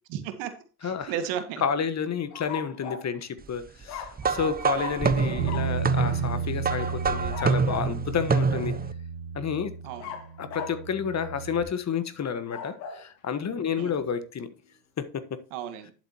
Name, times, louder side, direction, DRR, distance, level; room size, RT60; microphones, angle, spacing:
voice 1, 0.1-0.5 0.8-1.6 9.8-10.2 13.8-13.9 15.5-15.9, right 9 dB, 65° right, 8 dB, 2.0 m, -34 dB
voice 2, 1.6-8.7 9.3-9.7 10.4-14.5 15.0-15.4, left 7 dB, 35° left, 13 dB, 1.3 m, -30 dB
sound 1, 2.3-3.1 3.9-4.5 4.7-5.1 5.4-5.7 6.8-8.0 10.0-10.8 12.3-13.0, left 8 dB, 75° left, 2.4 m, -39 dB
sound 2, 4.2-8.9, right 5 dB, 20° right, 0.7 m, -27 dB
Bass guitar, 5.4-11.6, right 6 dB, 80° right, 1.4 m, -33 dB
11.5 x 7.5 x 2.9 m, 0.36 s
hypercardioid pair, 75°, 49 cm